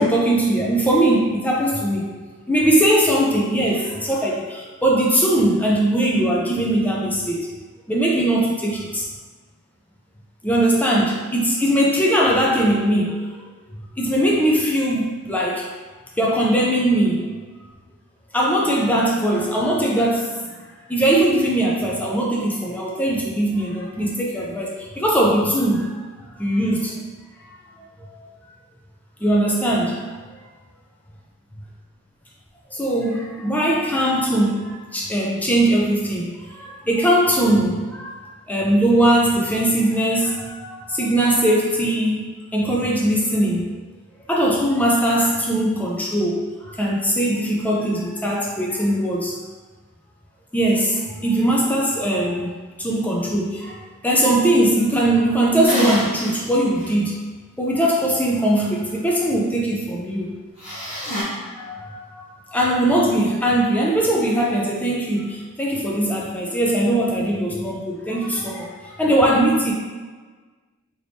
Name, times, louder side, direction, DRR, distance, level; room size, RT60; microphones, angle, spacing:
voice 1, 0.0-2.1 2.5-7.5 7.9-9.0 10.4-13.2 14.0-15.7 16.2-17.3 18.3-20.4 20.9-26.0 26.4-27.0 27.4-27.5 28.0-28.3 29.2-30.1 32.7-38.2 38.5-43.7 44.3-49.3 50.5-52.5 52.8-57.2 57.6-60.3 61.1-69.7, right 1 dB, 5° left, -3 dB, 0.4 m, -20 dB
sound 1, 55.6-56.4 56.8-56.9 60.6-61.2, equal, 35° left, 1.2 m, -25 dB
3.4 x 3.0 x 2.6 m, 1.4 s
head